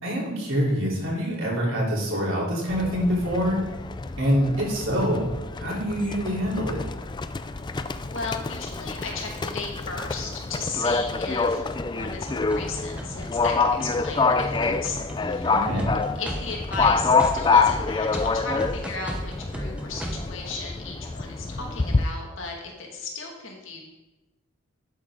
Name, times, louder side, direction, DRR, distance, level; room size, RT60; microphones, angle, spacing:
voice 1, 0.0-3.7 4.2-5.2 5.6-6.8 15.5-15.9, equal, 65° right, -4 dB, 4.0 m, -25 dB
Livestock farm animals working animals, 2.7-22.0, left 4 dB, 20° left, 0.4 m, -27 dB
voice 2, 7.7-15.6 16.2-23.8, left 3 dB, 65° left, 0 dB, 2.2 m, -36 dB
sound 1, 12.3-20.3, equal, 5° right, 0.8 m, -35 dB
12.0 x 8.5 x 3.9 m, 1.1 s
head